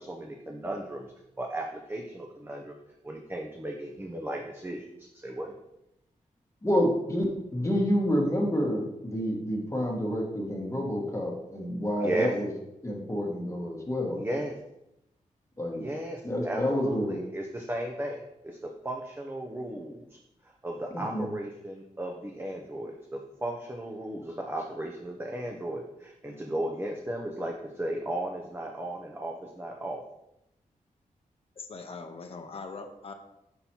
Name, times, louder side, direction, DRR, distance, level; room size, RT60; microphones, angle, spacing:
voice 1, 0.0-2.7 3.0-5.5 12.0-12.3 14.1-14.5 15.7-20.2 20.4-30.0, right 1 dB, 15° right, 1 dB, 0.7 m, -35 dB
voice 2, 6.6-12.5 12.8-14.2 15.6-15.8 16.2-17.2 20.9-21.3, equal, 20° left, -1 dB, 1.3 m, -28 dB
voice 3, 31.6-33.1, left 4 dB, 45° left, 5 dB, 0.7 m, -41 dB
5.6 x 4.0 x 4.4 m, 0.86 s
wide cardioid pair, 85°, 14 cm